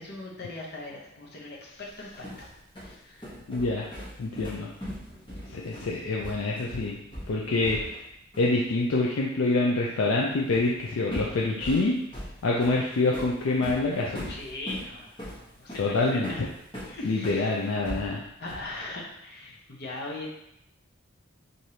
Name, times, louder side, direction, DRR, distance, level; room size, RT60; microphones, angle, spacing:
voice 1, 0.0-2.5 2.8-3.3 4.4-4.6 7.3-7.6 14.3-16.4 16.8-17.7 18.4-20.3, left 2 dB, 55° left, -3 dB, 0.8 m, -40 dB
sound 1, 1.9-8.1 8.3-8.6 10.5-10.8 11.1-17.4 17.8-18.8, equal, 25° left, 1.2 m, -40 dB
voice 2, 3.5-3.9 4.2-4.7 5.5-7.0 7.3-8.0 8.4-12.0 12.4-14.3 15.8-16.5 17.0-18.2, left 2 dB, 75° left, -3 dB, 0.5 m, -26 dB
4.7 x 2.6 x 2.8 m, 0.81 s
head